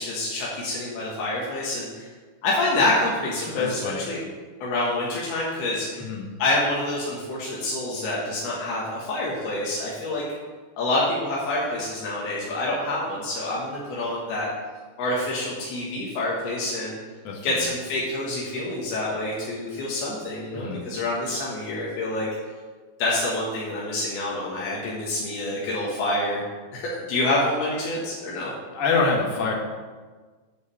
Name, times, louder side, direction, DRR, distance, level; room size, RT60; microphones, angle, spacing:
voice 1, 0.0-2.1 2.4-4.2 4.6-6.1 6.4-10.2 10.8-14.5 15.0-17.0 17.4-22.3 23.0-26.4 26.7-28.5, left 2 dB, 85° left, -5 dB, 3.5 m, -27 dB
voice 2, 3.5-4.1 6.0-6.3 17.2-17.6 20.5-20.8 28.7-29.5, left 4 dB, 60° left, -2 dB, 2.5 m, -25 dB
9.6 x 4.8 x 6.9 m, 1.4 s
omnidirectional pair, 4.4 m